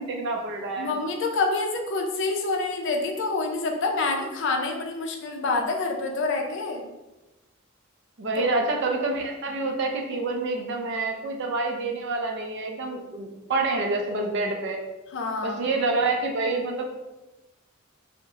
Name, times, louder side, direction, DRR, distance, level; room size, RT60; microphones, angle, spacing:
voice 1, 0.0-1.0 8.2-14.8 15.4-16.8, right 3 dB, 60° right, 2 dB, 0.4 m, -27 dB
voice 2, 0.8-6.8 8.2-8.5 15.1-15.6, left 3 dB, 60° left, 2 dB, 0.4 m, -27 dB
2.6 x 2.0 x 2.8 m, 1.0 s
head